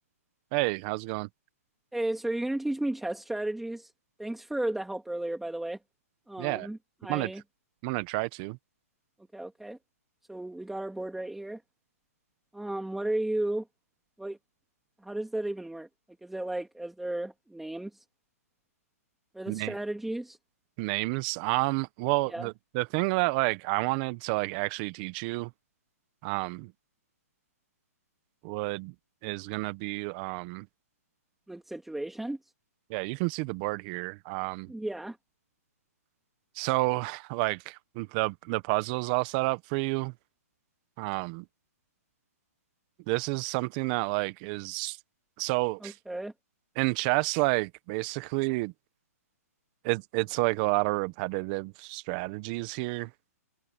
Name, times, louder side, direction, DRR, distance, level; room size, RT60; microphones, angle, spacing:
voice 1, 0.5-1.3 6.4-6.7 7.1-7.3 7.8-8.6 19.5-19.7 20.8-25.5 26.2-26.7 28.4-28.9 29.2-30.7 32.9-34.7 36.5-40.1 41.0-41.5 43.1-45.0 45.4-45.9 46.8-48.7 49.8-53.1, right 25 dB, 30° right, 1.3 m, -30 dB
voice 2, 1.9-3.9 4.2-5.8 6.3-6.8 7.0-7.4 9.3-9.8 10.3-11.6 12.5-13.7 14.2-14.4 15.0-15.9 16.2-18.0 19.3-20.4 22.3-22.5 31.5-32.4 34.7-35.2 45.8-46.3, right 1 dB, ahead, 2.9 m, -34 dB
hypercardioid pair, 150°, 9 cm